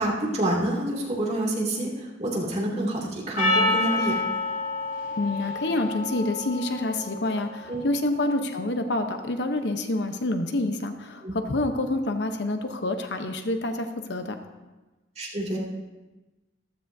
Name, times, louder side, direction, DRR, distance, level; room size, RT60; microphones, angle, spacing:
voice 1, 0.0-4.2 7.7-7.8 11.2-11.3 15.2-15.6, right 1 dB, 40° right, -3 dB, 2.6 m, -27 dB
Percussion, 3.4-7.9, left 2 dB, 50° left, 2.6 m, -28 dB
voice 2, 5.2-14.3, left 2 dB, 70° left, 6 dB, 0.9 m, -27 dB
14.5 x 13.0 x 2.7 m, 1.2 s
head